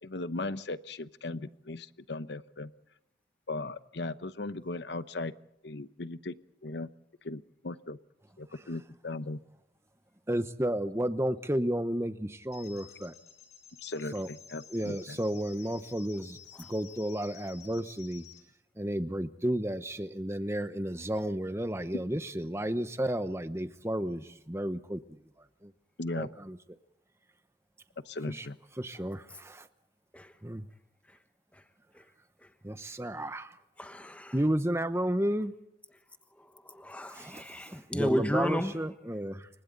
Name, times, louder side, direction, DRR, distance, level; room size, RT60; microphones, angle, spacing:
voice 1, 0.0-2.7 3.5-5.3 5.6-6.3 6.6-6.9 7.2-8.0 8.4-9.4 13.8-15.2 26.0-26.3 28.1-28.6, left 2 dB, 65° left, 0.9 m, -37 dB
voice 2, 10.3-13.1 14.1-14.3 14.7-16.4 16.7-18.2 18.8-25.2 25.6-25.7 26.1-26.6 28.3-28.5 28.8-29.7 30.4-30.7 32.6-33.6 34.3-35.5 37.1-39.5, right 1 dB, 15° right, 1.0 m, -32 dB
sound 1, 12.5-18.4, left 9 dB, 35° left, 5.6 m, -53 dB
voice 3, 33.8-34.4 36.4-38.9, equal, 5° left, 1.2 m, -34 dB
29.5 x 24.5 x 4.0 m
head